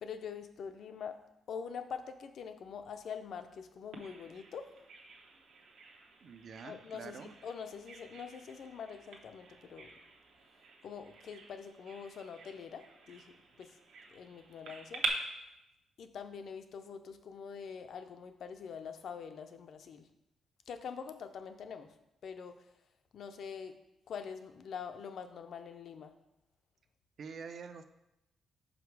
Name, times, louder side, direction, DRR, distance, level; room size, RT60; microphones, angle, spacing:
voice 1, 0.0-1.2 1.5-4.7 6.6-9.9 10.8-13.7 14.1-15.0 16.0-20.1 20.7-21.9 22.2-22.6 23.1-23.8 24.1-26.1, left 6 dB, 55° left, 8 dB, 0.5 m, -44 dB
Bird vocalization bird call bird song, 3.9-15.1, right 5 dB, 75° right, 0.9 m, -46 dB
voice 2, 6.2-7.3 27.2-27.9, right 5 dB, 45° right, 9 dB, 0.4 m, -46 dB
5.7 x 5.0 x 4.7 m, 0.88 s
wide cardioid pair, 175°, 0 cm